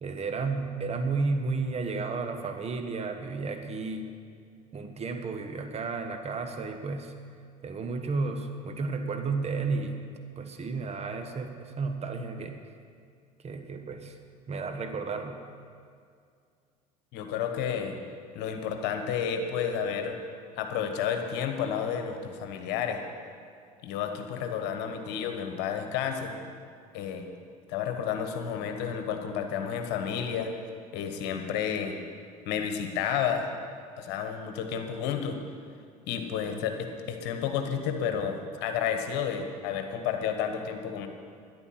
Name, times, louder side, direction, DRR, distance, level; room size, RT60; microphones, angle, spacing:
voice 1, 0.0-4.1 4.7-7.1 7.6-10.0 10.4-12.6 13.4-14.2 14.5-15.4, right 4 dB, 35° right, 5 dB, 1.4 m, -32 dB
voice 2, 17.1-18.0 18.3-20.2 20.5-23.0 23.8-26.3 26.9-27.3 27.7-30.5 30.9-32.0 32.4-33.5 34.0-35.4 36.1-41.1, left 7 dB, 60° left, 5 dB, 1.4 m, -31 dB
12.5 x 10.5 x 5.8 m, 2.2 s
hypercardioid pair, 70°, 20 cm